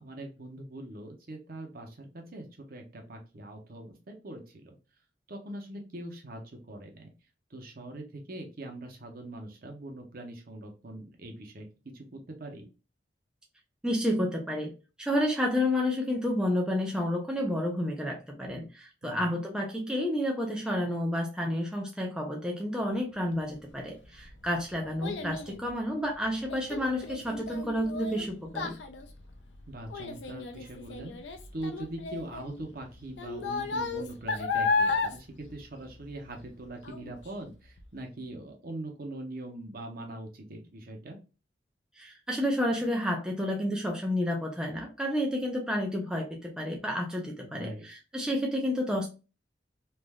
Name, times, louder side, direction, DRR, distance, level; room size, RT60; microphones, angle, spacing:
voice 1, 0.0-4.8 5.3-6.4 6.7-7.1 7.5-11.7 11.9-12.6 19.0-19.4 29.7-31.1 31.5-41.2 47.4-47.9, right 1 dB, 55° right, 3 dB, 0.8 m, -42 dB
voice 2, 13.8-14.7 15.0-28.8 42.0-49.1, left 1 dB, 5° right, 0 dB, 0.4 m, -30 dB
Child speech kid speaking, 23.8-36.5 36.8-37.3 37.8-37.9, left 4 dB, 90° left, 0.5 m, -34 dB
3.3 x 2.5 x 2.2 m, 0.31 s
head